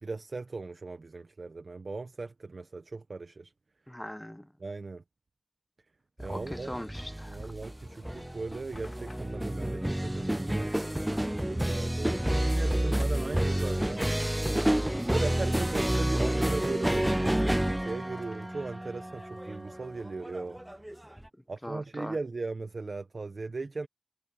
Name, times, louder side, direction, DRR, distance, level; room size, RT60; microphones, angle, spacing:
voice 1, 0.0-3.5 4.6-5.0 6.2-6.7 7.3-10.7 11.5-14.1 15.1-20.6 21.5-23.9, right 3 dB, 85° right, 1.0 m, -38 dB
voice 2, 3.9-4.5 6.2-7.4 10.1-10.2 21.6-22.2, left 1 dB, 15° left, 1.2 m, -40 dB
sound 1, 6.2-21.3, right 1 dB, 15° right, 0.5 m, -30 dB
sound 2, 7.6-8.4 8.8-9.4 10.2-10.9 11.1-11.9 13.0-13.7 14.0-14.4 15.2-16.2 17.5-18.3, left 3 dB, 75° left, 3.4 m, -56 dB
wide cardioid pair, 40°, 0 cm